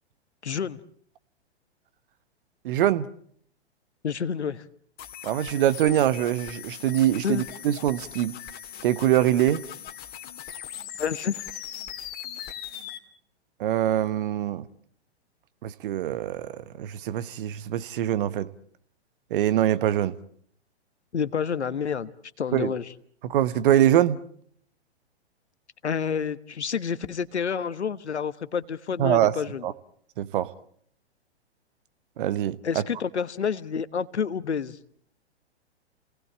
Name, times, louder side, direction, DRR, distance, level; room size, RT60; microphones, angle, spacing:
voice 1, 0.4-0.8 4.0-4.6 7.2-7.4 11.0-11.4 21.1-22.1 22.4-22.9 25.8-29.6 32.6-34.8, left 7 dB, 80° left, 1.3 m, -29 dB
voice 2, 2.6-3.1 5.2-8.4 8.8-9.7 13.6-14.6 15.6-18.5 19.3-20.1 22.5-22.7 23.2-24.2 29.0-29.3 29.6-29.7 30.2-30.5 32.2-32.8, right 12 dB, 50° right, 1.3 m, -24 dB
sound 1, 5.0-13.0, left 10 dB, 30° left, 2.4 m, -40 dB
29.0 x 19.0 x 8.7 m
figure-of-eight pair, 110°, 33 cm